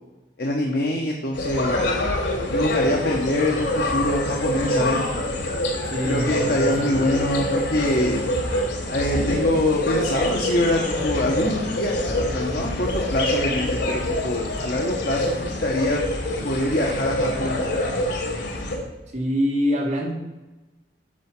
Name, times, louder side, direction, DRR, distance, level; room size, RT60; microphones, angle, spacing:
voice 1, 0.4-1.8 2.5-5.0 6.0-8.2 8.9-16.1 16.4-18.0, left 1 dB, 60° left, -1 dB, 1.3 m, -24 dB
sound 1, 1.3-18.8, left 1 dB, 85° left, 3.1 m, -25 dB
voice 2, 5.9-6.9 19.1-20.1, equal, 40° right, -1 dB, 2.0 m, -25 dB
9.5 x 7.0 x 6.0 m, 1.1 s
head